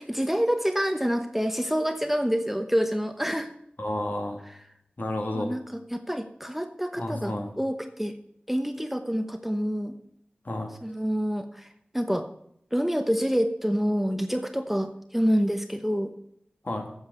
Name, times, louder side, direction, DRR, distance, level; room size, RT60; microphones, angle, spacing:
voice 1, 0.0-3.5 5.3-5.6 5.9-8.1 8.5-10.0 10.8-11.7 11.9-12.3 12.7-16.1, equal, 5° right, 8 dB, 0.9 m, -27 dB
voice 2, 3.8-4.4 5.0-5.5 7.0-7.5 10.4-10.7 16.6-16.9, left 1 dB, 55° left, 3 dB, 2.2 m, -31 dB
8.7 x 7.2 x 6.9 m, 0.71 s
wide cardioid pair, 50°, 4 cm